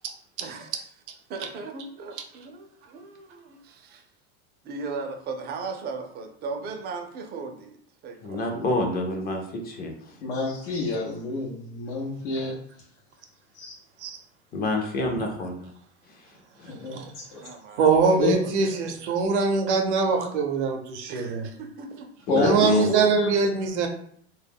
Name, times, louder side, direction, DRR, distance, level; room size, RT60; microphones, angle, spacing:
voice 1, 0.4-0.8 1.3-4.0 4.6-8.5 17.4-17.8 18.3-19.0 21.1-22.1, right 4 dB, 30° right, 4 dB, 0.4 m, -37 dB
voice 2, 8.2-10.2 14.5-15.7 16.6-16.7 22.3-22.9, left 2 dB, 30° left, 2 dB, 0.5 m, -28 dB
voice 3, 10.2-12.6 13.5-13.7 16.7-17.4 18.2-18.3 22.3-23.3, left 2 dB, 80° left, -5 dB, 0.7 m, -28 dB
voice 4, 17.4-21.5 22.4-23.9, right 5 dB, 85° right, 3 dB, 0.6 m, -23 dB
2.3 x 2.0 x 3.4 m, 0.65 s
supercardioid pair, 110°, 33 cm